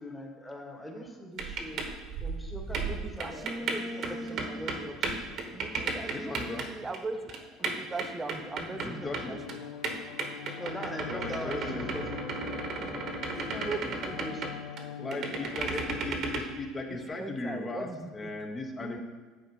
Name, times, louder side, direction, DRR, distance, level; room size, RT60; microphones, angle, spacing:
voice 1, 0.0-1.9 2.2-5.1 8.9-9.3 10.5-12.4 14.1-14.5, equal, 5° left, 1 dB, 1.4 m, -41 dB
sound 1, 1.4-6.6 6.9-7.0 7.3-9.6 9.8-14.8 15.1-16.4, right 4 dB, 50° right, 1.1 m, -34 dB
voice 2, 2.9-9.6 13.3-13.9 15.7-15.8 16.9-18.1 18.8-19.0, right 3 dB, 20° right, 7 dB, 0.7 m, -40 dB
voice 3, 6.1-6.7 7.6-7.7 8.8-9.4 10.4-10.6 11.0-11.9 13.5-14.2 15.0-19.0, left 2 dB, 25° left, 4 dB, 1.1 m, -38 dB
Bowed string instrument, 8.3-16.7, left 8 dB, 85° left, 0.4 m, -43 dB
9.0 x 4.1 x 5.5 m, 1.4 s
supercardioid pair, 110°, 0 cm